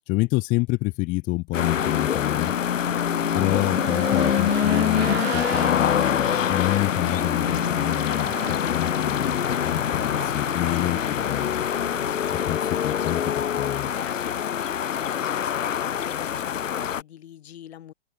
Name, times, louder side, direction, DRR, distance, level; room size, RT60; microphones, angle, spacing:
voice 1, 0.1-2.5 3.3-11.7 12.3-13.9, left 24 dB, 20° left, 1.2 m, -28 dB
sound 1, 1.5-17.0, left 9 dB, 85° left, 1.1 m, -25 dB
Race car auto racing / Engine, 2.2-12.3, right 12 dB, 55° right, 1.1 m, -38 dB
sound 2, 3.8-5.0 5.5-7.2 8.0-13.5 13.8-14.7, right 13 dB, 20° right, 4.3 m, -51 dB
voice 2, 13.9-17.9, left 11 dB, 55° left, 4.8 m, -44 dB
open air
hypercardioid pair, 150°, 37 cm